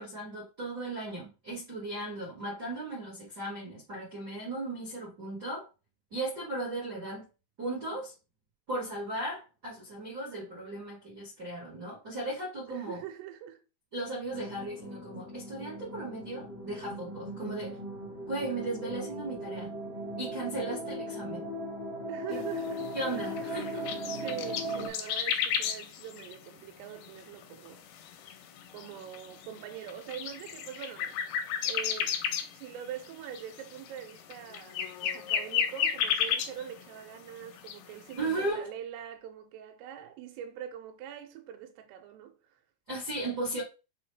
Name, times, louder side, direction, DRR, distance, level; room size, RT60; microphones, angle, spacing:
voice 1, 0.0-5.7 6.1-7.2 7.6-8.1 8.7-13.0 13.9-17.8 18.3-19.7 20.2-21.4 22.3-22.4 22.9-23.9 38.2-38.7 42.9-43.6, right 2 dB, 65° right, 0.9 m, -36 dB
voice 2, 12.7-13.6 22.1-23.3 24.0-27.8 28.7-32.2 32.5-42.5, right 10 dB, 85° right, 2.7 m, -43 dB
sound 1, 14.3-24.9, equal, 50° left, 0.7 m, -38 dB
sound 2, 22.4-37.0 37.3-38.2, left 8 dB, 85° left, 2.4 m, -34 dB
6.1 x 2.2 x 3.2 m
omnidirectional pair, 4.7 m